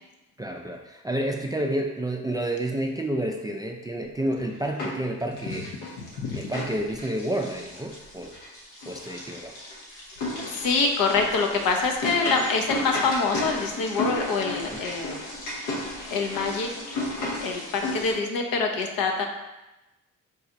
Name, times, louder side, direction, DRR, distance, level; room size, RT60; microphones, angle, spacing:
voice 1, 0.4-5.7 6.3-8.4 8.9-9.6 14.7-14.8, right 1 dB, 10° right, 2 dB, 0.3 m, -30 dB
sound 1, 4.2-5.1 5.4-18.1, left 2 dB, 85° left, 1.1 m, -34 dB
voice 2, 6.1-6.5 10.5-15.3 16.1-16.7 17.4-19.3, left 4 dB, 65° left, 3 dB, 0.8 m, -25 dB
4.0 x 2.4 x 4.0 m, 1.0 s
hypercardioid pair, 55°, 38 cm